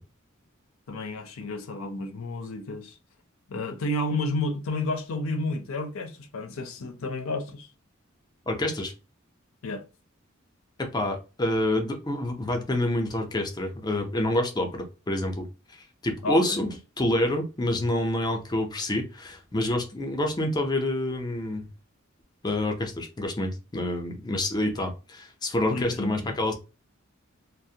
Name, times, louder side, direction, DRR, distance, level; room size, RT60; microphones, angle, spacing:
voice 1, 0.9-3.0 3.5-7.7 9.6-9.8 16.2-16.6 25.7-26.3, left 2 dB, 75° left, 0.5 m, -31 dB
voice 2, 8.5-8.9 10.8-15.5 16.0-21.7 22.4-26.5, left 1 dB, 20° left, 0.5 m, -27 dB
2.4 x 2.0 x 2.7 m
head